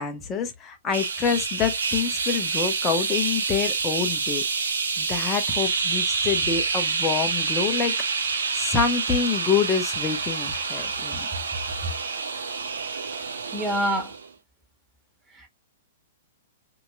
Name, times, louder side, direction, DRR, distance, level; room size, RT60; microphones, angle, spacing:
voice 1, 0.0-4.4 5.0-7.9 8.5-11.3, left 6 dB, 20° left, 0.9 m, -26 dB
sound 1, 0.9-14.3, right 5 dB, 75° right, 0.6 m, -27 dB
voice 2, 13.5-14.1 15.4-15.5, right 1 dB, 15° right, 1.7 m, -26 dB
2.9 x 2.8 x 2.2 m
hypercardioid pair, 115°, 0 cm